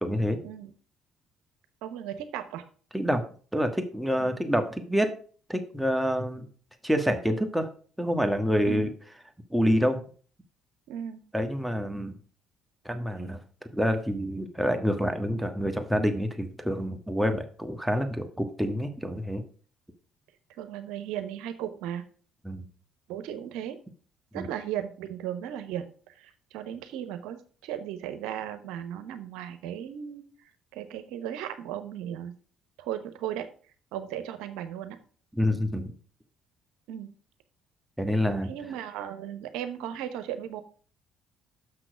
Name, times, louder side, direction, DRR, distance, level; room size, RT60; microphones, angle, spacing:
voice 1, 0.0-0.4 2.9-3.2 3.5-5.1 5.5-6.5 6.8-7.7 8.0-8.9 9.5-10.0 11.3-12.2 12.8-13.4 13.7-19.4 22.4-22.6 24.3-24.5 35.3-35.9 38.0-38.5, equal, 5° right, 6 dB, 1.4 m, -27 dB
voice 2, 1.8-2.6 4.2-4.3 8.7-8.9 10.9-11.2 20.6-22.0 23.1-23.8 24.3-30.2 30.7-32.3 32.8-33.4 33.9-35.0 36.9-37.1 38.5-40.6, right 10 dB, 75° right, 10 dB, 0.9 m, -36 dB
6.4 x 6.1 x 5.0 m, 0.42 s
hypercardioid pair, 55°, 0 cm